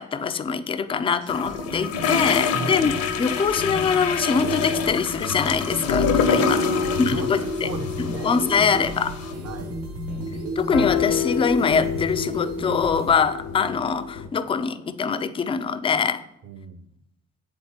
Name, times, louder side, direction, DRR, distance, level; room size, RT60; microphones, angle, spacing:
voice 1, 0.0-2.9 3.2-6.6 7.0-7.7 8.0-9.1 10.6-16.2, left 5 dB, 15° left, 12 dB, 0.4 m, -23 dB
sound 1, 1.1-13.1, right 2 dB, 80° right, 1.2 m, -34 dB
sound 2, 1.3-9.3, left 6 dB, 55° left, 0.8 m, -28 dB
sound 3, 2.7-14.3, left 6 dB, 85° left, 0.8 m, -29 dB
voice 2, 6.3-8.3 9.4-9.8 16.4-16.9, right 4 dB, 35° right, 3 dB, 0.6 m, -35 dB
8.9 x 3.8 x 3.5 m, 0.76 s
figure-of-eight pair, 45°, 42 cm